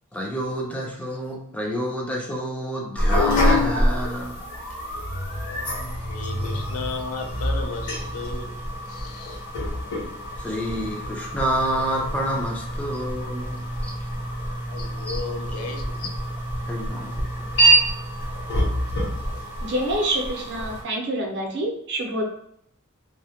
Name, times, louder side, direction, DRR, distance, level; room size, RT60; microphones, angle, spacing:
voice 1, 0.1-4.4 10.4-13.9 15.0-15.2 16.7-17.3 17.5-17.7, equal, 5° left, -2 dB, 0.4 m, -29 dB
sound 1, 3.0-20.8, equal, 55° left, 0.9 m, -26 dB
voice 2, 5.5-8.5 8.9-9.4 14.7-16.2, left 4 dB, 75° left, 4 dB, 0.4 m, -35 dB
voice 3, 19.6-22.2, right 1 dB, 55° right, 0 dB, 0.6 m, -26 dB
2.2 x 2.1 x 2.8 m, 0.70 s
head